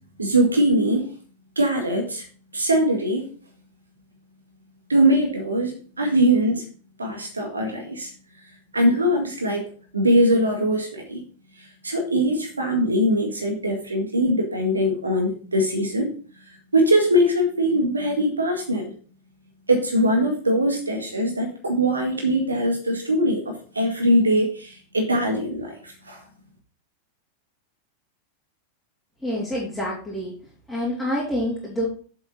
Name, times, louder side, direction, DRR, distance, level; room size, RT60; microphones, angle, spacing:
voice 1, 0.2-1.1 1.6-2.2 2.5-3.2 4.9-6.6 7.0-8.1 8.7-11.2 11.6-16.1 16.7-18.9 19.7-26.2, equal, 80° right, 3 dB, 1.9 m, -22 dB
voice 2, 29.2-30.4 30.7-31.9, equal, 5° left, -7 dB, 3.4 m, -27 dB
8.0 x 7.7 x 4.1 m, 0.41 s
figure-of-eight pair, 90°, 0 cm